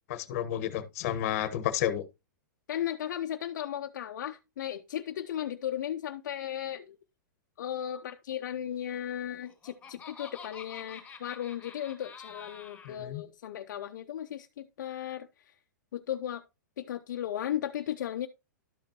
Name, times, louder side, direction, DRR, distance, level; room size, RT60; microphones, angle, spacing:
voice 1, 0.1-2.0 12.8-13.2, left 11 dB, 50° left, 1.0 m, -31 dB
voice 2, 2.7-7.0 7.6-15.5 15.9-16.4 16.8-18.3, left 11 dB, 70° left, 0.6 m, -36 dB
Laughter, 9.2-13.0, left 6 dB, 10° left, 2.7 m, -48 dB
12.0 x 5.2 x 2.9 m
hypercardioid pair, 140°, 10 cm